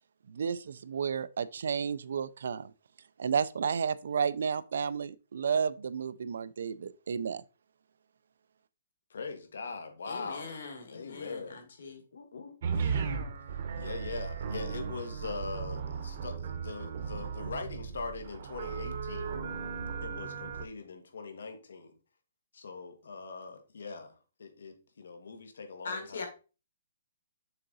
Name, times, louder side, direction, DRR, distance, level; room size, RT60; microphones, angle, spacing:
voice 1, 0.3-2.7 3.2-7.4, right 6 dB, 60° right, 0.4 m, -32 dB
voice 2, 9.1-10.5 10.9-11.6 12.1-13.2 13.8-19.4 20.0-21.9 22.5-26.3, left 4 dB, 90° left, 1.5 m, -42 dB
voice 3, 10.1-12.0 25.8-26.3, left 4 dB, 60° left, 1.9 m, -41 dB
sound 1, 12.6-20.6, right 6 dB, 40° right, 0.8 m, -36 dB
6.6 x 3.8 x 4.0 m
hypercardioid pair, 180°, 0 cm